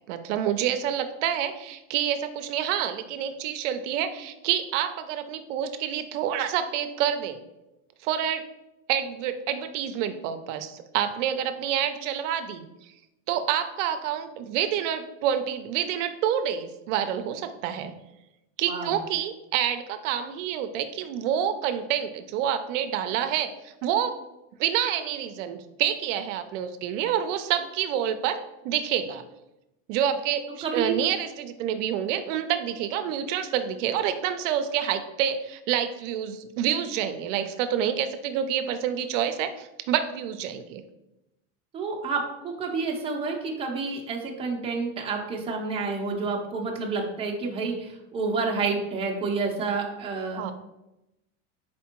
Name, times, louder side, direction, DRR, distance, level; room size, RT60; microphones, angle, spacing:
voice 1, 0.1-7.4 8.0-8.4 8.9-12.7 13.3-17.9 18.6-24.2 24.6-29.2 29.9-40.8 50.4-50.5, right 9 dB, 70° right, 9 dB, 0.5 m, -28 dB
voice 2, 30.6-30.9 41.7-50.5, right 4 dB, 15° right, -1 dB, 0.6 m, -29 dB
4.3 x 3.4 x 2.9 m, 0.92 s
supercardioid pair, 140°, 38 cm